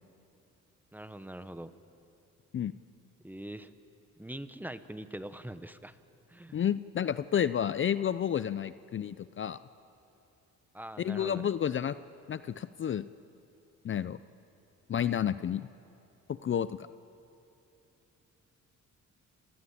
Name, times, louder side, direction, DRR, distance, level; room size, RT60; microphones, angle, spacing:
voice 1, 0.9-1.7 3.2-3.7 4.2-6.0 6.3-6.6 10.7-11.5, right 1 dB, 5° right, 12 dB, 1.1 m, -43 dB
voice 2, 6.5-9.6 11.0-12.0 12.3-13.0 13.8-14.2 14.9-15.7 16.4-16.9, left 9 dB, 40° left, 14 dB, 0.6 m, -30 dB
28.5 x 19.0 x 8.6 m, 2.8 s
cardioid pair, 90°, 30 cm